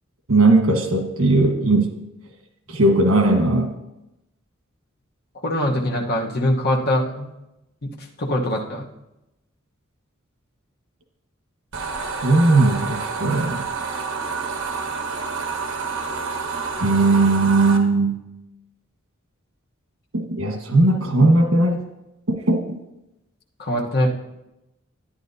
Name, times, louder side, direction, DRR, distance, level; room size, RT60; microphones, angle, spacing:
voice 1, 0.3-1.9 2.7-3.7 12.2-13.7 16.8-18.2 20.1-21.8 22.3-22.8, right 2 dB, 85° right, 4 dB, 1.3 m, -18 dB
voice 2, 5.4-7.3 7.8-7.9 8.2-8.8 23.6-24.1, left 1 dB, 50° left, 0 dB, 1.1 m, -22 dB
sound 1, 11.7-17.8, right 4 dB, 70° right, 1.1 m, -28 dB
11.5 x 9.9 x 2.7 m, 0.92 s
head